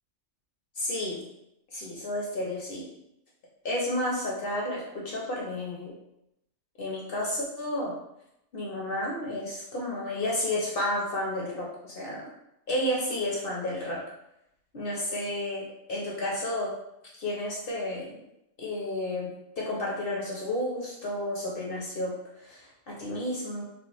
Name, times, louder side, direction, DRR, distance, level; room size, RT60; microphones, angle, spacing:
voice 1, 0.8-1.2 1.7-2.9 3.6-5.9 6.8-7.9 8.5-12.3 12.7-14.0 14.7-16.7 17.1-18.2 18.6-23.6, left 1 dB, 55° left, -4 dB, 0.7 m, -31 dB
3.4 x 2.1 x 2.9 m, 0.83 s
omnidirectional pair, 1.4 m